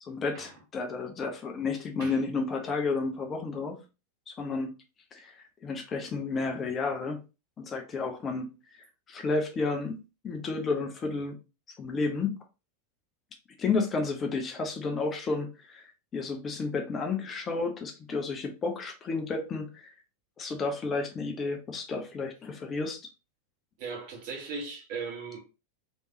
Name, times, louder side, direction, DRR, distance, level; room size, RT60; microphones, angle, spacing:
voice 1, 0.0-3.8 4.3-4.7 5.1-5.3 5.6-7.2 7.6-8.5 9.1-10.0 10.2-11.4 11.8-12.4 13.6-19.9 20.4-23.0, left 4 dB, 25° left, 0.7 m, -31 dB
voice 2, 23.8-25.4, right 4 dB, 45° right, 1.3 m, -37 dB
3.4 x 3.1 x 2.6 m
figure-of-eight pair, 90°, 0 cm